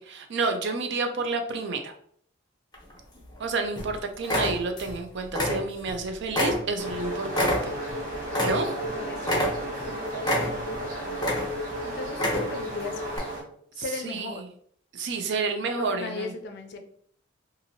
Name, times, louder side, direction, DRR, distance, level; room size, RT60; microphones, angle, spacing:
voice 1, 0.0-1.9 3.4-7.7 8.4-8.7 13.8-14.4 14.9-16.3, right 3 dB, 65° right, 6 dB, 0.5 m, -30 dB
sound 1, 2.7-3.4 3.8-3.9 4.2-5.0 5.3-6.0 6.3-8.9 9.2-9.9 10.2-10.8 11.1-11.7 12.1-12.7 13.1-13.2, left 1 dB, 20° left, 0.8 m, -27 dB
sound 2, 6.8-13.4, equal, 45° right, 1.1 m, -33 dB
voice 2, 9.0-11.4 11.8-13.1 13.7-14.4 15.6-16.8, left 3 dB, 60° left, 5 dB, 0.5 m, -38 dB
2.8 x 2.6 x 2.7 m, 0.62 s
head